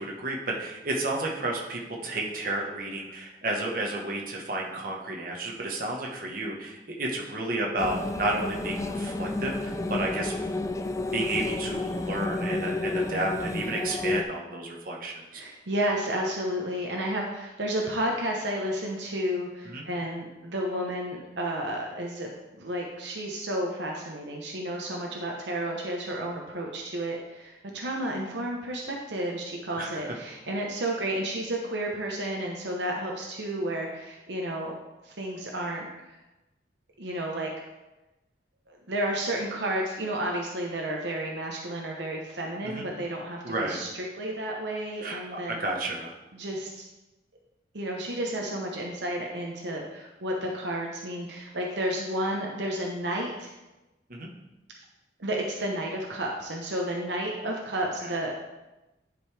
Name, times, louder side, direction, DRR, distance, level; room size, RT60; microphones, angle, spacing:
voice 1, 0.0-10.4 10.9-15.4 19.7-19.8 29.7-30.0 42.6-42.8 43.4-43.8 45.0-46.1 54.1-54.3, right 2 dB, 50° right, -1 dB, 1.3 m, -32 dB
sound 1, 7.8-14.2, left 2 dB, 15° left, 0.3 m, -31 dB
voice 2, 15.3-22.3 22.6-34.7 35.0-36.2 37.0-37.5 38.7-45.6 46.3-46.8 47.7-53.5 55.2-58.3, right 1 dB, 75° right, 0 dB, 0.9 m, -32 dB
10.5 x 5.3 x 3.4 m, 1.0 s
head